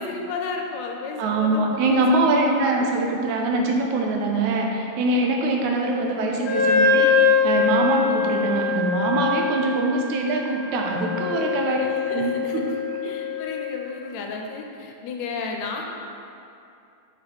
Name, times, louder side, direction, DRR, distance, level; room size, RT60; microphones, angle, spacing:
voice 1, 0.0-2.2 11.7-12.6 13.0-15.9, left 4 dB, 75° left, 2 dB, 1.8 m, -33 dB
voice 2, 1.2-11.8 12.1-12.8, right 2 dB, 85° right, 1 dB, 2.2 m, -23 dB
Wind instrument woodwind instrument, 6.4-13.8, left 5 dB, 60° left, 0.5 m, -23 dB
7.9 x 5.7 x 3.5 m, 2.6 s
omnidirectional pair, 3.3 m